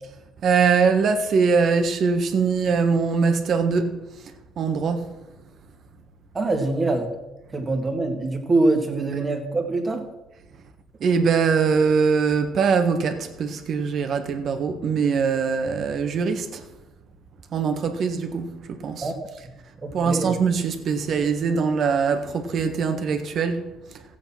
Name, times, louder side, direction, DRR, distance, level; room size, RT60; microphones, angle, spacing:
voice 1, 0.4-4.0 4.2-5.1 11.0-16.6 17.5-19.1 19.9-24.0, right 5 dB, 55° right, 1.4 m, -22 dB
voice 2, 6.3-7.1 7.5-10.1 19.0-19.3 19.8-20.4, right 2 dB, 25° right, 2.1 m, -24 dB
14.5 x 8.1 x 5.9 m
cardioid pair, 105°, 0 cm